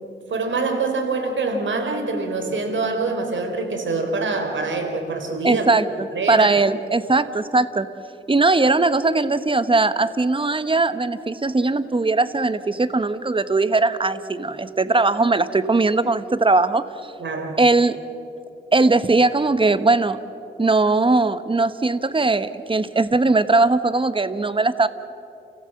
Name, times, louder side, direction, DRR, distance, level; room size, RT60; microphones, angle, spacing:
voice 1, 0.3-5.7 6.1-6.5 17.2-17.6, right 3 dB, 70° right, 4 dB, 3.7 m, -25 dB
voice 2, 5.4-7.9 8.3-16.8 17.6-18.0 18.7-20.2 20.6-24.9, right 3 dB, 25° right, 13 dB, 1.1 m, -19 dB
29.5 x 15.5 x 7.7 m, 2.8 s
cardioid pair, 65°, 21 cm